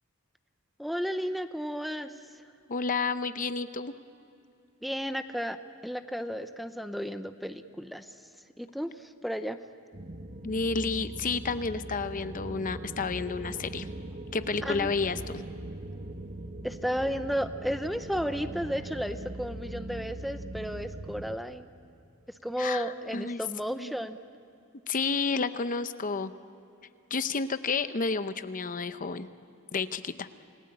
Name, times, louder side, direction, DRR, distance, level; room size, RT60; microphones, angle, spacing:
voice 1, 0.8-2.1 4.8-5.6 5.8-8.1 8.6-9.6 14.6-14.9 16.6-21.7 22.4-24.2, equal, ahead, 9 dB, 0.7 m, -33 dB
voice 2, 2.7-3.9 10.4-13.9 14.3-15.4 22.6-23.4 23.8-24.0 24.9-26.3 27.1-29.3 29.7-30.3, left 4 dB, 40° left, 11 dB, 0.7 m, -31 dB
sound 1, 9.9-21.4, right 1 dB, 40° right, 1.3 m, -41 dB
28.5 x 19.0 x 8.7 m, 2.7 s
head